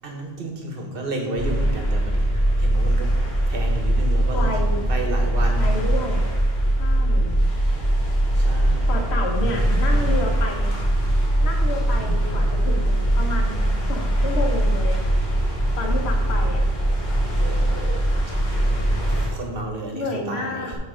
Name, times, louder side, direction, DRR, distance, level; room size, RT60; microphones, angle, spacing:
voice 1, 0.0-3.1 3.5-4.5 4.9-5.9 8.4-9.0 17.2-20.8, right 2 dB, 55° right, 2 dB, 1.3 m, -32 dB
sound 1, 1.4-19.3, right 1 dB, 40° left, 1.6 m, -21 dB
voice 2, 4.3-4.8 5.6-6.3 6.8-7.3 8.9-10.7 11.4-15.2 15.8-16.6 19.9-20.8, left 2 dB, 70° left, 1 dB, 1.3 m, -30 dB
7.5 x 3.3 x 5.0 m, 1.3 s
omnidirectional pair, 1.1 m